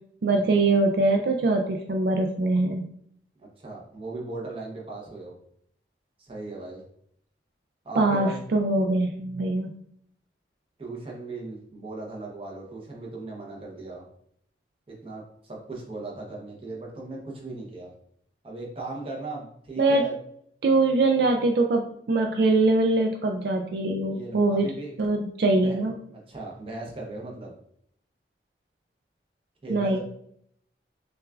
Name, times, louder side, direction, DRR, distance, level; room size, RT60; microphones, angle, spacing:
voice 1, 0.2-2.9 8.0-9.7 19.8-20.1 20.6-24.7 25.0-26.0 29.7-30.0, right 2 dB, 60° right, 3 dB, 0.3 m, -23 dB
voice 2, 3.4-5.3 6.2-6.8 7.8-8.4 10.8-14.1 14.9-17.9 18.4-20.1 24.1-24.9 25.5-25.8 26.1-27.5 29.6-30.0, right 2 dB, 30° right, -2 dB, 0.8 m, -38 dB
6.0 x 2.4 x 2.4 m, 0.69 s
head